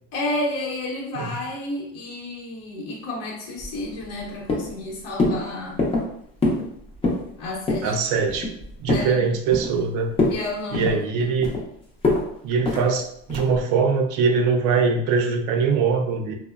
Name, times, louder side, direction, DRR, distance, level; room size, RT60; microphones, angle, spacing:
voice 1, 0.1-5.8 7.4-7.9 8.9-9.3 10.3-11.4, left 2 dB, 45° left, -4 dB, 0.8 m, -31 dB
sound 1, 3.6-4.2 4.5-4.8 5.2-5.4 5.8-6.1 6.4-6.7 6.9-7.3 7.7-7.9 8.3-9.1 9.5-9.9 10.1-10.4 10.7-11.6 12.0-12.2 12.6-12.9 13.3-13.6, left 2 dB, 15° left, 0.5 m, -23 dB
voice 2, 7.8-8.5 8.8-10.1 10.7-11.6 12.4-16.3, right 5 dB, 60° right, 4 dB, 0.5 m, -22 dB
2.8 x 2.0 x 2.3 m, 0.70 s
supercardioid pair, 125°, 36 cm